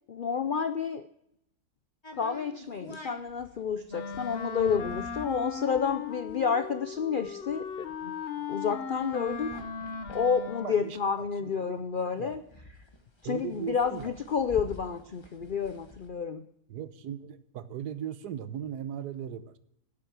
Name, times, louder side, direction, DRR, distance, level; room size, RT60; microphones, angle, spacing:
voice 1, 0.1-1.0 2.2-8.1 8.5-9.5 10.1-12.4 13.2-16.5, left 6 dB, 80° left, 11 dB, 0.4 m, -30 dB
sound 1, 2.0-11.5 11.9-12.0 12.1-16.1, left 2 dB, 20° left, 1.3 m, -48 dB
Wind instrument woodwind instrument, 3.9-11.1, left 6 dB, 45° left, 1.0 m, -38 dB
voice 2, 10.6-11.8 12.1-12.4 13.2-14.1 16.7-19.6, right 9 dB, 85° right, 14 dB, 1.4 m, -38 dB
10.5 x 8.5 x 7.5 m, 0.76 s
omnidirectional pair, 1.7 m